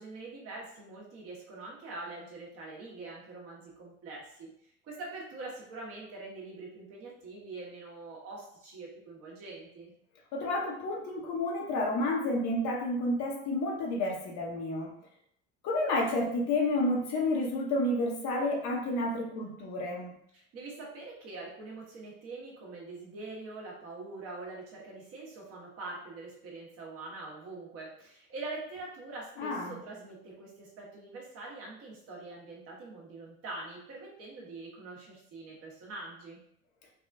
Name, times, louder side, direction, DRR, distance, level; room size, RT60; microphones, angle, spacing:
voice 1, 0.0-9.9 20.3-36.4, right 3 dB, 50° right, -3 dB, 1.0 m, -44 dB
voice 2, 10.3-14.9 15.6-20.1 29.4-29.8, left 2 dB, 65° left, 0 dB, 0.8 m, -30 dB
3.4 x 2.3 x 2.5 m, 0.70 s
cardioid pair, 135°, 29 cm